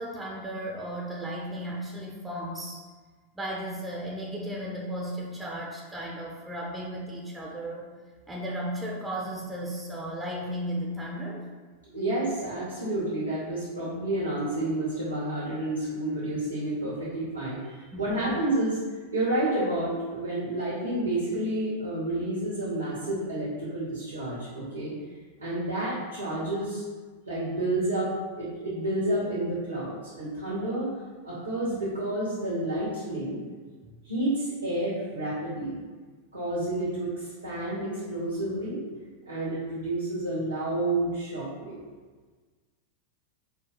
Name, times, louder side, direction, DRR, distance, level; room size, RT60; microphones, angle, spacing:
voice 1, 0.0-2.8 3.3-7.9 8.3-11.5 17.9-18.4, equal, 10° right, -2 dB, 0.6 m, -35 dB
voice 2, 11.9-18.8 19.1-24.9 25.4-26.8 27.2-30.9 31.2-33.4 34.0-35.8 36.3-38.8 39.3-41.8, right 1 dB, 80° right, -8 dB, 1.2 m, -30 dB
4.5 x 2.3 x 4.0 m, 1.4 s
figure-of-eight pair, 90°, 0 cm